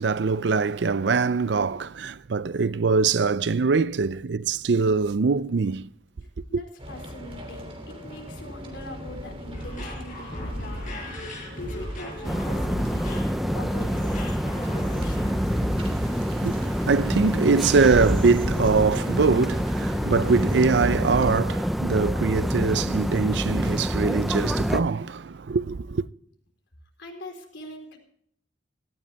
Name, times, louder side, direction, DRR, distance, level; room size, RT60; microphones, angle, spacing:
voice 1, 0.0-5.9 6.5-6.6 16.0-26.0, right 4 dB, 70° right, 0.5 m, -23 dB
voice 2, 6.5-10.9 11.2-15.4 27.0-28.0, left 1 dB, 80° left, 4.1 m, -42 dB
sound 1, 6.8-21.4, equal, 30° right, 2.9 m, -36 dB
sound 2, 9.5-16.0, equal, 45° left, 7.5 m, -35 dB
sound 3, 12.2-24.8, equal, ahead, 0.6 m, -27 dB
17.5 x 14.5 x 3.4 m
head